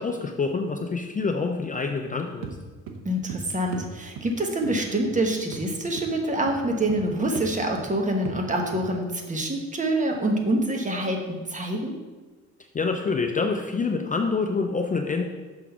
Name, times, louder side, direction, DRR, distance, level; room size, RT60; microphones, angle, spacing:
voice 1, 0.0-2.5 12.7-15.3, left 4 dB, 25° left, 4 dB, 0.5 m, -26 dB
sound 1, 2.4-2.6 2.9-3.4 3.7-3.9 4.2-4.3 4.6-4.8 5.0-5.2 5.5-5.7 6.0-6.1 6.5-7.1 7.4-7.5 7.8-7.9 8.3-8.4 8.7-8.9, right 5 dB, 90° right, 0.8 m, -36 dB
voice 2, 3.0-11.9, right 1 dB, 25° right, 2 dB, 1.2 m, -26 dB
6.1 x 3.8 x 5.8 m, 1.3 s
cardioid pair, 90°, 30 cm